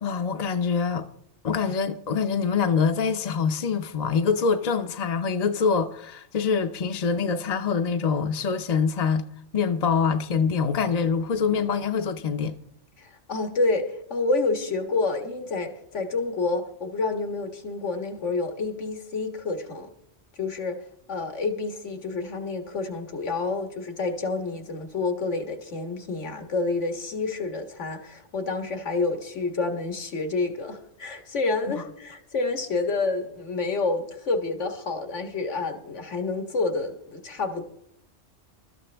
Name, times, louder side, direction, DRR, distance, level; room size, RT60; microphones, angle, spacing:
voice 1, 0.0-1.1 1.4-9.3 9.5-12.5 31.8-31.9, left 5 dB, 45° left, 0.6 m, -25 dB
voice 2, 13.0-19.9 20.4-20.8 21.1-37.6, left 3 dB, 90° left, 1.9 m, -28 dB
22.5 x 13.0 x 3.4 m
omnidirectional pair, 1.2 m